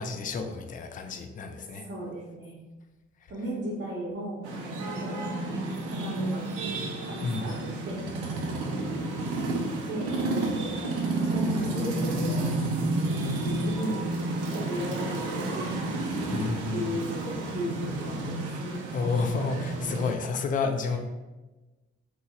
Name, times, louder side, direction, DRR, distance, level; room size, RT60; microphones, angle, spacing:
voice 1, 0.0-1.9 7.2-7.5 16.3-17.0 18.9-21.0, left 4 dB, 25° left, 6 dB, 0.3 m, -30 dB
voice 2, 1.8-2.6 3.3-5.2 5.9-6.4 7.0-8.0 9.9-10.7 11.2-12.5 13.6-14.1 14.5-15.7 16.7-18.8 20.9-21.0, right 1 dB, 30° right, -6 dB, 0.8 m, -36 dB
sound 1, 4.4-20.2, right 2 dB, 65° right, 0.6 m, -31 dB
2.9 x 2.8 x 2.3 m, 1.2 s
hypercardioid pair, 45°, 34 cm